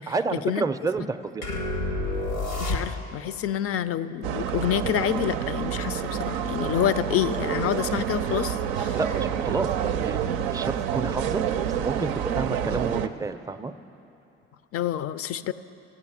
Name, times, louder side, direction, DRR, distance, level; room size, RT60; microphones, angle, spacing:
voice 1, 0.0-1.5 8.9-13.7, right 4 dB, 10° right, 10 dB, 0.4 m, -30 dB
sound 1, 1.4-3.3, left 2 dB, 90° left, 1.2 m, -29 dB
voice 2, 2.6-9.0 14.7-15.5, left 10 dB, 50° left, 15 dB, 0.5 m, -28 dB
sound 2, 4.2-13.1, right 9 dB, 85° right, 0.5 m, -28 dB
13.5 x 8.3 x 4.9 m, 2.8 s
hypercardioid pair, 50°, 31 cm